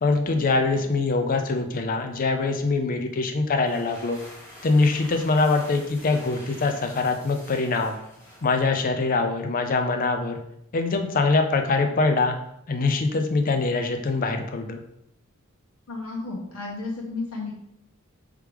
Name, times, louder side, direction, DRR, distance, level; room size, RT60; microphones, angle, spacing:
voice 1, 0.0-4.2 4.6-8.0 8.4-10.4 10.7-12.4 12.7-14.8, left 3 dB, 40° left, 5 dB, 0.5 m, -23 dB
sound 1, 3.5-9.1, left 1 dB, 10° left, 1.7 m, -47 dB
voice 2, 15.9-17.5, left 3 dB, 75° left, -3 dB, 1.1 m, -33 dB
4.8 x 3.2 x 3.4 m, 0.77 s
head